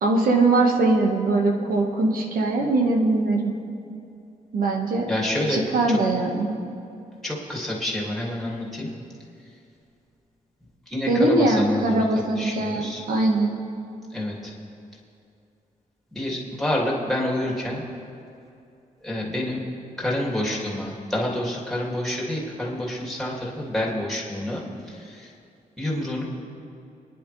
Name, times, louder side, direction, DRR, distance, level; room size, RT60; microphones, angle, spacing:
voice 1, 0.0-3.5 4.5-5.1 5.5-6.5 11.1-13.5, right 2 dB, 80° right, 1 dB, 1.6 m, -21 dB
voice 2, 5.1-6.0 7.2-8.9 10.9-13.0 14.1-14.5 16.1-17.8 19.0-19.6 20.0-25.3 25.8-26.2, left 1 dB, ahead, -4 dB, 2.5 m, -28 dB
25.0 x 10.5 x 3.3 m, 2.6 s
wide cardioid pair, 155°, 14 cm